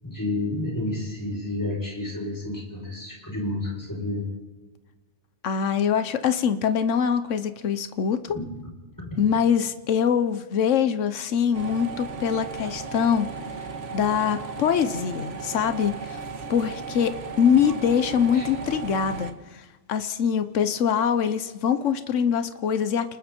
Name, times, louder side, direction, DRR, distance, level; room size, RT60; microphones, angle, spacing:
voice 1, 0.0-4.2 8.4-8.5 9.0-9.2 18.3-18.4, left 2 dB, 15° left, -3 dB, 7.5 m, -30 dB
voice 2, 5.4-8.4 9.2-13.3 13.9-16.2 16.5-23.2, left 7 dB, 85° left, 11 dB, 1.3 m, -24 dB
sound 1, 11.5-19.3, right 5 dB, 75° right, 1.9 m, -36 dB
30.0 x 19.5 x 4.5 m, 1.2 s
omnidirectional pair, 1.2 m